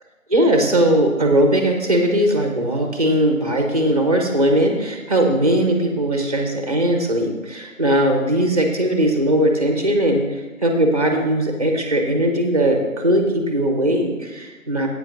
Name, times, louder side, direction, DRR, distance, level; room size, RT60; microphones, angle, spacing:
voice 1, 0.3-14.9, right 1 dB, 25° right, 3 dB, 1.1 m, -19 dB
13.5 x 8.8 x 2.6 m, 1.2 s
figure-of-eight pair, 165°, 42 cm